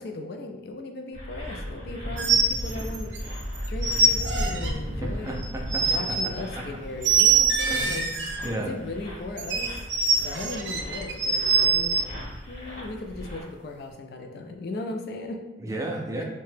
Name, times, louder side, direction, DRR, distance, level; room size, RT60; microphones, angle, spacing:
voice 1, 0.0-3.1 3.7-5.4 5.7-9.7 10.2-12.0 12.5-15.4 16.2-16.3, left 2 dB, 60° left, 4 dB, 0.4 m, -37 dB
sound 1, 1.1-13.4, equal, 45° left, 0.9 m, -36 dB
sound 2, 2.2-3.3 3.5-4.7 5.4-6.2 7.0-8.5 9.4-12.0, right 5 dB, 80° right, 0.4 m, -23 dB
voice 2, 5.0-6.2 7.7-8.7 15.6-16.2, right 1 dB, 20° right, 0 dB, 0.3 m, -34 dB
2.8 x 2.1 x 3.2 m, 1.1 s
head